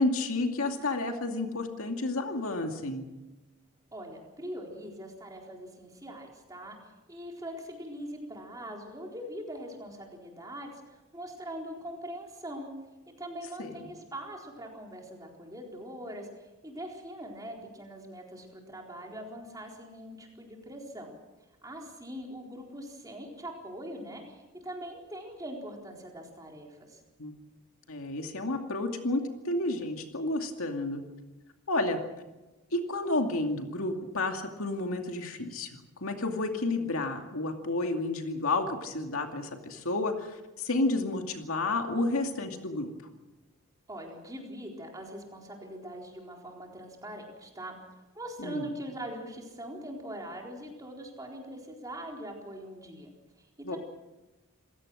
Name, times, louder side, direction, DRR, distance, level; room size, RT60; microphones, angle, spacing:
voice 1, 0.0-3.1 13.6-13.7 27.2-27.3 27.9-31.0 31.7-32.0 32.7-42.9 48.4-48.7 53.6-53.8, left 2 dB, 75° left, 4 dB, 2.4 m, -31 dB
voice 2, 3.9-12.7 13.1-21.1 21.6-27.0 43.9-47.7 48.1-53.1 53.4-53.8, equal, 15° right, 0 dB, 4.1 m, -42 dB
27.5 x 16.5 x 6.4 m, 1.1 s
head